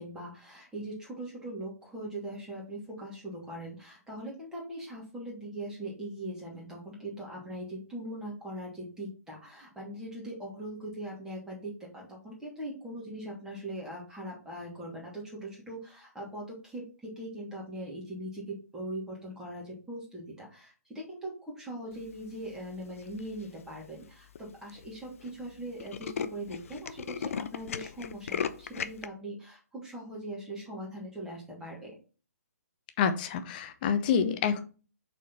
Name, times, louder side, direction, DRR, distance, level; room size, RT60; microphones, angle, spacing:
voice 1, 0.0-31.9, right 1 dB, 5° right, -4 dB, 2.8 m, -41 dB
Tools, 23.0-23.4 24.0-24.1 24.4-24.5 24.7-24.9 25.2-25.3 25.6-29.1, left 7 dB, 55° left, 0.6 m, -36 dB
voice 2, 33.0-34.6, left 7 dB, 35° left, 10 dB, 0.8 m, -27 dB
6.1 x 4.4 x 4.3 m, 0.36 s
figure-of-eight pair, 140°, 9 cm